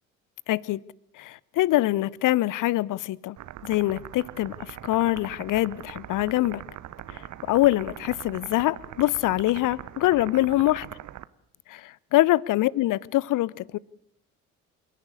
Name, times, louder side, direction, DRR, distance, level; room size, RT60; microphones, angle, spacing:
voice 1, 0.5-0.8 1.2-3.4 3.6-6.6 7.1-10.9 11.7-13.8, left 16 dB, 45° left, 0.8 m, -24 dB
sound 1, 3.4-11.2, right 12 dB, 40° right, 1.0 m, -41 dB
28.0 x 11.0 x 9.7 m
figure-of-eight pair, 55°, 43 cm